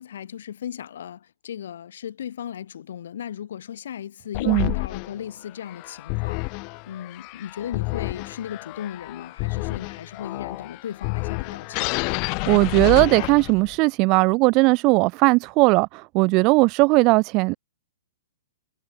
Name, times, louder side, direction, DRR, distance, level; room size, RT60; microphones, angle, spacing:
voice 1, 0.0-6.5 6.9-11.9, left 9 dB, 60° left, 6.6 m, -36 dB
sound 1, 4.3-13.8, left 35 dB, 35° left, 2.0 m, -30 dB
voice 2, 12.5-17.5, right 26 dB, 35° right, 0.4 m, -18 dB
figure-of-eight pair, 120°, 0 cm